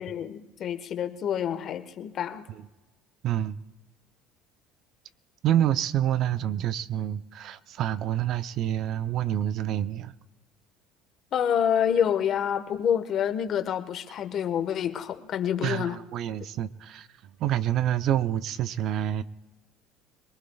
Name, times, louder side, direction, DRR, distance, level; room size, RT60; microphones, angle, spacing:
voice 1, 0.0-2.5 11.3-16.0, left 9 dB, 50° left, 1.2 m, -27 dB
voice 2, 3.2-3.6 5.4-10.1 15.6-19.2, right 11 dB, 60° right, 0.6 m, -27 dB
26.0 x 20.0 x 2.3 m
supercardioid pair, 105°, 0 cm